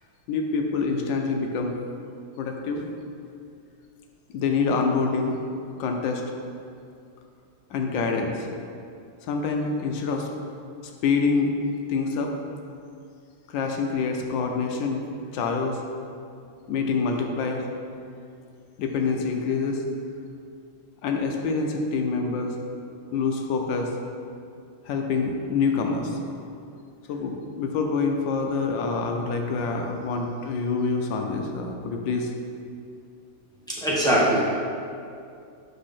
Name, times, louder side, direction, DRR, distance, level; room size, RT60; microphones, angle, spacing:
voice 1, 0.3-1.8 2.4-2.8 4.3-5.4 5.8-6.2 7.7-8.5 9.3-10.3 11.0-11.5 11.9-12.3 13.5-15.0 15.3-15.8 16.7-17.6 18.8-19.8 21.0-22.6 23.1-23.9 24.9-26.2 27.1-32.3, left 4 dB, 75° left, 3 dB, 1.2 m, -26 dB
voice 2, 33.8-34.6, equal, 5° left, -9 dB, 0.5 m, -21 dB
5.4 x 3.4 x 5.7 m, 2.4 s
omnidirectional pair, 2.2 m